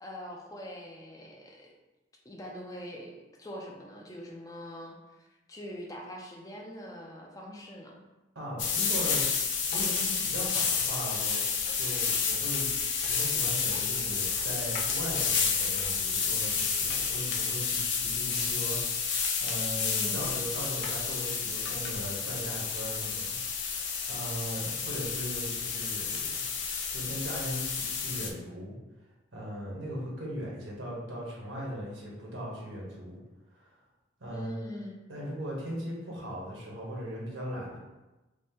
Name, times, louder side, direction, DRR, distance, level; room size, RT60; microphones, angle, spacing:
voice 1, 0.0-1.7 2.2-3.1 3.4-8.0 19.8-20.4 34.3-35.0, equal, 20° left, -1 dB, 0.4 m, -43 dB
voice 2, 8.3-9.2 9.7-11.4 11.7-23.4 23.7-26.4 26.9-28.7 29.3-33.2 33.5-33.8 34.2-34.5 35.1-37.8, equal, 85° right, -3 dB, 1.3 m, -39 dB
sound 1, 8.6-28.3, left 6 dB, 75° left, 0.5 m, -30 dB
5.0 x 2.1 x 3.6 m, 1.1 s
head